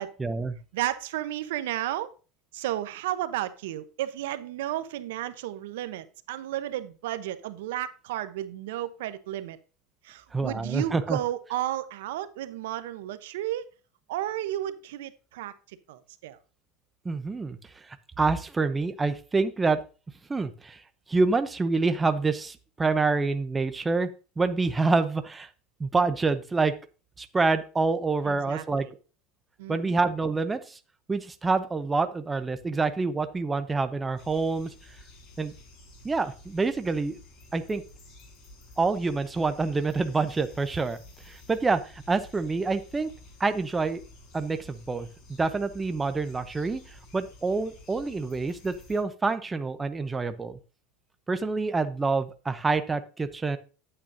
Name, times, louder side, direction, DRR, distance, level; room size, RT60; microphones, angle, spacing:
voice 1, 0.2-0.6 10.3-11.2 17.0-17.6 18.2-19.8 20.3-20.8 21.1-24.1 24.4-25.5 25.8-26.7 27.2-28.9 29.7-30.8 31.1-34.7 35.4-35.5 36.0-37.2 37.5-37.8 38.8-41.0 41.3-43.1 43.4-44.0 44.3-45.1 45.4-46.8 47.1-50.6 51.3-53.6, right 3 dB, 15° right, 0.7 m, -27 dB
voice 2, 0.7-2.1 2.5-9.6 10.0-13.7 14.1-16.4 28.3-28.9 29.6-30.0, right 13 dB, 85° right, 0.7 m, -33 dB
sound 1, 34.2-49.0, left 1 dB, 45° left, 4.2 m, -51 dB
10.0 x 8.8 x 2.6 m
supercardioid pair, 130°, 0 cm